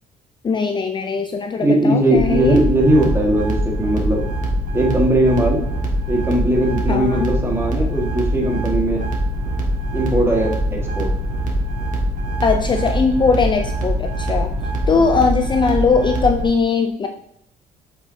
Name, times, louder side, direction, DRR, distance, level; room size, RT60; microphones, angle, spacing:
voice 1, 0.4-2.6 6.9-7.3 12.4-14.5 14.9-17.1, left 4 dB, 25° left, 5 dB, 0.5 m, -19 dB
voice 2, 1.6-4.2 4.7-5.6 6.1-9.0 9.9-11.1 14.9-15.1, right 1 dB, 15° right, 0 dB, 1.8 m, -19 dB
sound 1, 2.2-16.4, right 1 dB, 50° right, 1.9 m, -23 dB
7.7 x 6.0 x 2.8 m, 0.70 s
cardioid pair, 110°, 17 cm